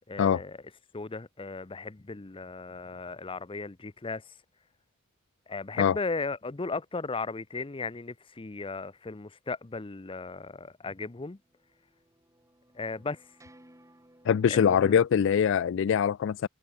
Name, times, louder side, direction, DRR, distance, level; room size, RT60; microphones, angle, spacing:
voice 1, 0.1-0.6 0.9-4.3 5.5-11.4 12.7-13.3 14.4-15.0, left 3 dB, 25° left, 0.6 m, -36 dB
sound 1, 11.3-14.7, right 1 dB, 15° right, 7.0 m, -59 dB
voice 2, 14.3-16.5, left 7 dB, 60° left, 0.3 m, -23 dB
head